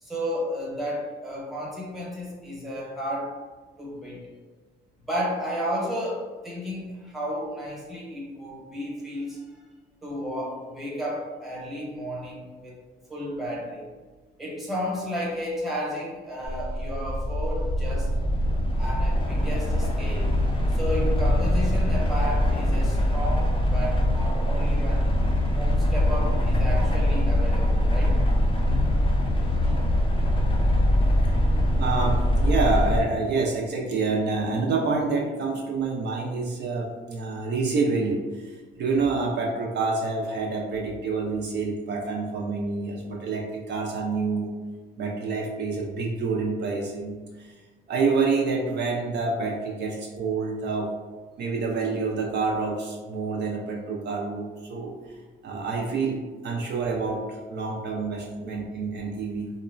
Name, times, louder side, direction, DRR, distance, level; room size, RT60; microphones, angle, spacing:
voice 1, 0.0-3.4 3.8-4.2 5.1-9.6 10.0-12.8 13.1-13.9 14.4-18.1 18.8-20.3 20.7-25.1 25.5-28.2, equal, ahead, -5 dB, 0.9 m, -32 dB
sound 1, 16.4-33.0, left 1 dB, 25° left, 0.5 m, -23 dB
voice 2, 31.8-44.5 45.0-47.6 47.9-50.9 51.4-55.2 55.4-59.5, right 4 dB, 60° right, -1 dB, 0.5 m, -27 dB
2.9 x 2.1 x 2.4 m, 1.4 s
cardioid pair, 90°, 20 cm